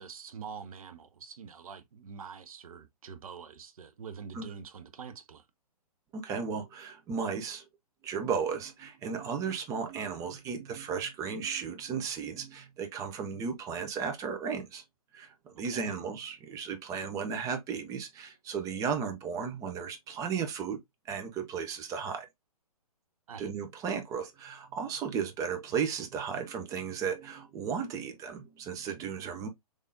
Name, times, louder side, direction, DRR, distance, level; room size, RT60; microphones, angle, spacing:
voice 1, 0.0-5.5 15.7-15.8 23.3-23.5, right 6 dB, 65° right, 0.8 m, -45 dB
voice 2, 6.1-7.6 8.0-14.8 15.1-20.8 21.1-22.3 23.4-29.5, right 6 dB, 15° right, 0.6 m, -35 dB
3.6 x 3.2 x 2.6 m
figure-of-eight pair, 130°, 20 cm